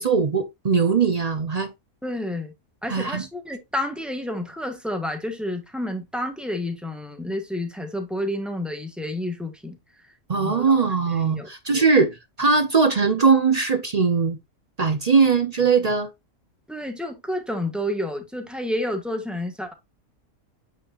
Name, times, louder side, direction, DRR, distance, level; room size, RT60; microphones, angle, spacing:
voice 1, 0.0-1.7 2.9-3.2 10.3-14.4 14.8-16.1, right 5 dB, 45° right, 0.5 m, -20 dB
voice 2, 2.0-2.5 2.8-9.8 10.3-10.7 11.1-11.8 16.7-19.7, left 1 dB, ahead, 1.3 m, -30 dB
8.5 x 5.3 x 2.5 m
omnidirectional pair, 1.5 m